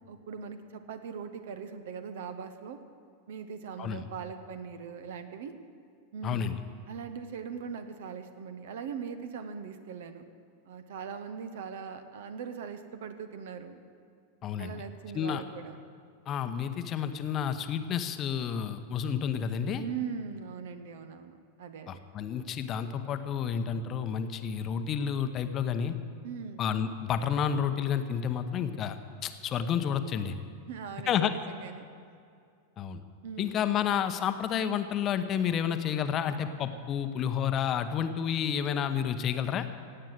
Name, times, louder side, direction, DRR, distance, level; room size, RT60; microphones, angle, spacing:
voice 1, 0.1-2.8 3.3-5.6 6.1-6.5 6.9-10.2 10.7-13.8 14.6-15.8 19.8-22.0 26.2-26.6 30.7-31.9 33.2-33.5, right 6 dB, 55° right, 9 dB, 1.0 m, -40 dB
voice 2, 6.2-6.5 14.4-14.8 15.1-15.4 16.3-19.8 21.9-25.9 26.6-29.0 29.2-30.3 31.1-31.3 32.8-33.0 33.4-39.7, left 8 dB, 30° left, 9 dB, 0.8 m, -30 dB
16.5 x 8.9 x 7.8 m, 2.4 s
figure-of-eight pair, 90°, 0 cm